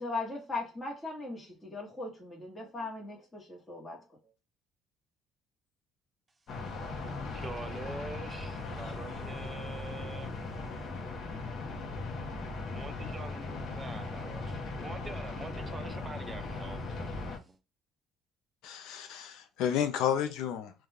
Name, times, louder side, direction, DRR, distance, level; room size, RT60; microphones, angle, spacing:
voice 1, 0.0-4.0, left 3 dB, 20° left, 1.1 m, -38 dB
sound 1, 6.5-17.4, left 3 dB, 50° left, 0.7 m, -38 dB
voice 2, 7.3-10.8 12.7-17.6, right 3 dB, 25° right, 0.4 m, -45 dB
voice 3, 18.6-20.7, left 9 dB, 80° left, 0.4 m, -31 dB
2.3 x 2.2 x 3.3 m
cardioid pair, 105°, 0 cm